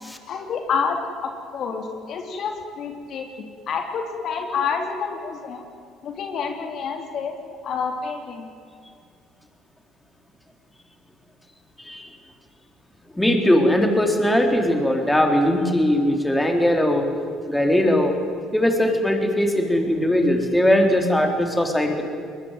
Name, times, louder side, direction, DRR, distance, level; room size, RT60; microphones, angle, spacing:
voice 1, 0.3-5.6 6.0-7.4 7.6-8.5, left 5 dB, 60° left, 4 dB, 3.0 m, -28 dB
voice 2, 13.2-17.1 17.5-18.1 18.5-22.0, left 1 dB, 10° left, 4 dB, 4.1 m, -20 dB
21.5 x 20.5 x 9.3 m, 2.3 s
hypercardioid pair, 65°, 0 cm